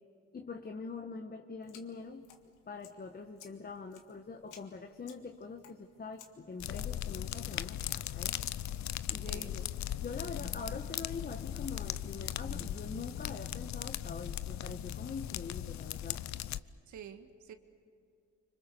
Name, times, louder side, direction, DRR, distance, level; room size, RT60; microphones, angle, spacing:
voice 1, 0.3-2.3 2.7-8.4 8.8-9.6 10.0-16.2, left 4 dB, 30° left, 5 dB, 1.3 m, -44 dB
sound 1, 1.6-9.0, left 8 dB, 90° left, 2.0 m, -60 dB
sound 2, 6.6-16.6, left 12 dB, 65° left, 0.7 m, -38 dB
voice 2, 9.2-9.6 16.9-17.5, right 8 dB, 75° right, 9 dB, 1.7 m, -48 dB
26.0 x 25.5 x 6.9 m, 2.6 s
cardioid pair, 90°, 30 cm